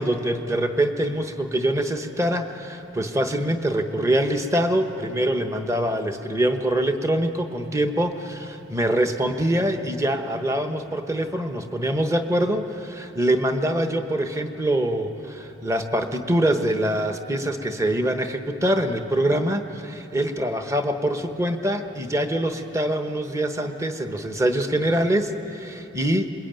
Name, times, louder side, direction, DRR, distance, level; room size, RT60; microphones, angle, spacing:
voice 1, 0.0-26.3, right 1 dB, 15° right, 6 dB, 1.1 m, -24 dB
27.0 x 22.0 x 9.1 m, 3.0 s
head